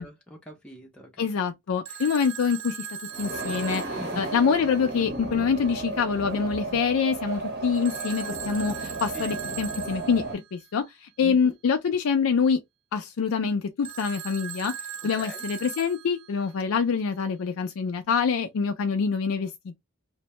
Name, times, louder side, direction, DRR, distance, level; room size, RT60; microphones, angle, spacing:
voice 1, 0.0-1.3 4.0-4.3 9.1-9.4 11.2-11.5 15.2-15.4, left 1 dB, 5° left, 0.5 m, -42 dB
voice 2, 1.2-2.8 3.2-12.6 12.9-14.7 15.0-19.5, left 6 dB, 70° left, 0.4 m, -25 dB
Telephone, 1.8-4.9 7.8-10.4 13.8-16.5, right 7 dB, 65° right, 0.4 m, -39 dB
sound 1, 3.1-10.4, right 2 dB, 50° right, 0.8 m, -34 dB
2.6 x 2.1 x 2.9 m
head